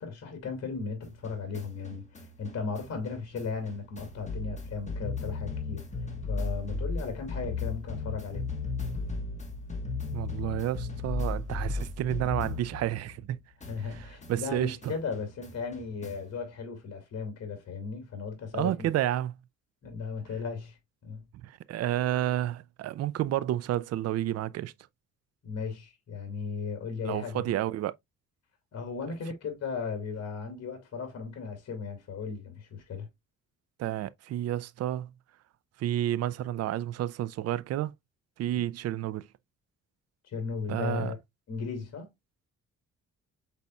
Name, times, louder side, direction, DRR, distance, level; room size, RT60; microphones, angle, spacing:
voice 1, 0.0-5.9 6.3-8.4 13.7-18.9 19.8-20.8 21.0-21.3 25.4-27.5 28.7-33.1 40.2-41.2 41.5-42.1, left 5 dB, 60° left, 2.2 m, -36 dB
sound 1, 1.0-13.3 13.6-16.4, left 3 dB, 25° left, 1.3 m, -36 dB
voice 2, 10.1-13.4 13.9-14.9 18.5-19.3 21.4-24.7 27.0-27.9 33.8-35.1 35.8-37.9 38.4-39.3 40.7-41.1, right 12 dB, 55° right, 0.4 m, -30 dB
5.3 x 4.1 x 2.3 m
cardioid pair, 90°, 30 cm